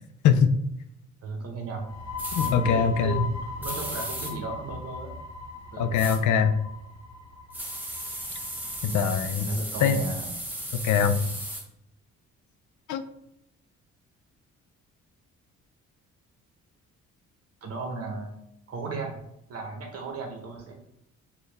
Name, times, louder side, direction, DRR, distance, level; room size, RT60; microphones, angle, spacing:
voice 1, 1.2-1.9 2.4-5.1 5.7-6.0 8.9-10.3 17.6-18.3 18.7-19.2 19.5-20.8, right 4 dB, 50° right, 1 dB, 0.8 m, -36 dB
sound 1, 1.8-9.2, left 4 dB, 55° left, 1.1 m, -38 dB
sound 2, 2.2-2.5 3.6-4.3 5.9-6.2 7.5-11.6, right 1 dB, 5° right, 0.8 m, -35 dB
voice 2, 2.3-3.3 5.8-6.5 8.8-9.5 9.8-10.0 10.7-11.2 12.9-13.0, left 7 dB, 75° left, 9 dB, 0.5 m, -22 dB
4.3 x 2.3 x 3.3 m, 0.81 s
cardioid pair, 90°, 30 cm